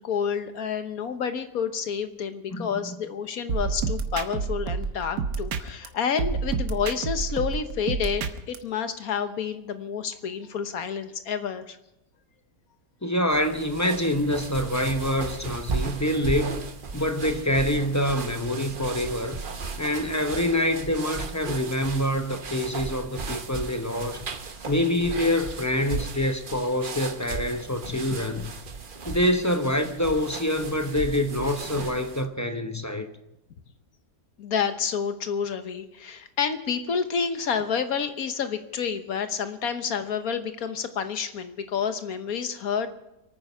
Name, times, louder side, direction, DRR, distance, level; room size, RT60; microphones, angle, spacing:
voice 1, 0.0-11.8 34.4-42.9, left 7 dB, 65° left, 1.5 m, -29 dB
voice 2, 2.5-3.0 13.0-16.6 16.9-19.4 19.8-24.2 24.7-28.5 29.1-33.1, left 1 dB, 15° left, 0.6 m, -26 dB
sound 1, 3.5-5.9 6.2-8.6, right 5 dB, 85° right, 1.7 m, -29 dB
sound 2, 13.3-32.3, right 4 dB, 35° right, 1.0 m, -36 dB
25.5 x 9.5 x 5.6 m
omnidirectional pair, 1.7 m